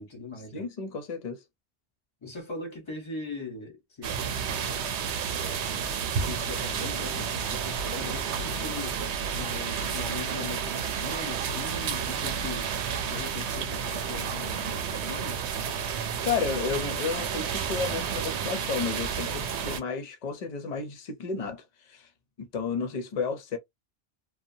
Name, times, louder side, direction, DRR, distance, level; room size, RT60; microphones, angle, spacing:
voice 1, 0.0-0.6 2.2-4.9 5.3-5.9 6.3-9.0 9.3-12.7 13.1-15.4, left 3 dB, 30° left, 1.0 m, -40 dB
voice 2, 0.5-1.4 16.2-22.1 22.4-23.6, left 5 dB, 45° left, 0.6 m, -32 dB
sound 1, 4.0-19.8, right 7 dB, 85° right, 0.9 m, -31 dB
2.7 x 2.2 x 2.6 m
omnidirectional pair, 1.1 m